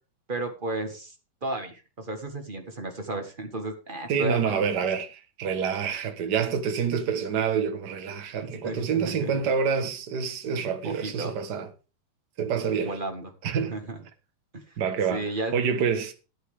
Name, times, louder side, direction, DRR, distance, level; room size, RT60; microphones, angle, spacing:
voice 1, 0.3-1.1 1.4-4.7 8.4-9.3 10.8-11.4 12.8-13.3 13.6-14.0 14.5-14.8 15.1-15.5, right 2 dB, 30° right, 0.9 m, -33 dB
voice 2, 4.1-11.7 12.4-13.0 13.4-13.8 14.8-15.2 15.5-16.1, right 6 dB, 45° right, 1.4 m, -27 dB
12.5 x 9.5 x 4.9 m
omnidirectional pair, 3.8 m